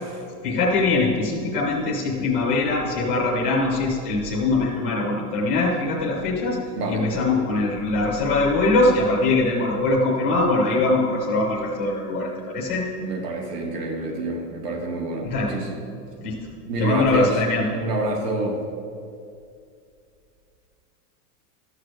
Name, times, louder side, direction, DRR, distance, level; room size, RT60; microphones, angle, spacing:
voice 1, 0.4-6.6 6.9-12.9 15.2-15.6 16.2-16.4 16.8-17.7, left 2 dB, 10° left, -4 dB, 0.4 m, -22 dB
voice 2, 13.0-15.8 16.6-17.4 17.7-18.6, right 2 dB, 85° right, 2 dB, 2.4 m, -27 dB
13.0 x 6.5 x 6.4 m, 2.4 s
supercardioid pair, 175°, 47 cm